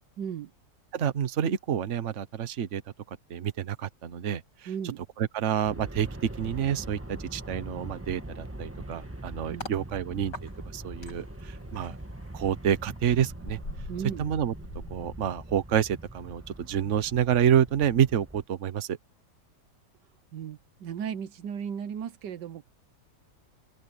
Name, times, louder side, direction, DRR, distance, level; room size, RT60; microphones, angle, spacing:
voice 1, 0.2-0.5 4.7-5.0 9.5-9.7 13.9-14.2 20.3-22.6, right 8 dB, 80° right, 1.5 m, -35 dB
voice 2, 0.9-2.8 3.3-4.7 5.2-6.1 6.4-12.0 12.3-13.6 14.2-14.5 14.9-19.0, right 9 dB, 50° right, 1.3 m, -28 dB
Aircraft, 5.6-18.4, right 1 dB, 10° right, 1.2 m, -42 dB
sound 1, 8.6-9.8 10.3-15.9 16.2-16.5, left 2 dB, 80° left, 8.0 m, -45 dB
open air
omnidirectional pair, 1.8 m